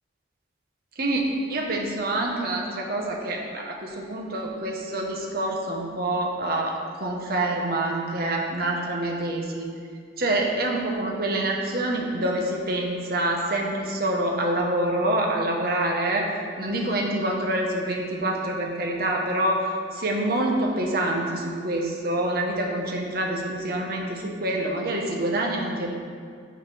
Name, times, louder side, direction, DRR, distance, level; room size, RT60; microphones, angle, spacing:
voice 1, 1.0-9.7 10.2-16.3 16.6-26.0, right 1 dB, 50° right, -1 dB, 1.0 m, -26 dB
9.0 x 4.1 x 4.8 m, 2.2 s
head